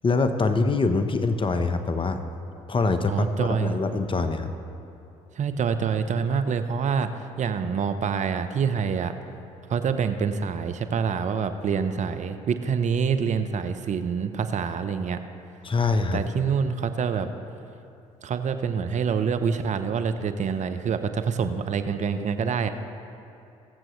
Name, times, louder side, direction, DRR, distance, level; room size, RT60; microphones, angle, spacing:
voice 1, 0.0-2.3 2.7-4.5 15.6-16.2, left 3 dB, 30° left, 8 dB, 0.9 m, -24 dB
voice 2, 3.1-3.8 5.4-7.1 7.4-9.2 9.7-15.2 16.1-17.3 18.2-22.7, right 6 dB, 45° right, 9 dB, 0.7 m, -26 dB
21.5 x 7.6 x 3.1 m, 2.7 s
hypercardioid pair, 60°, 17 cm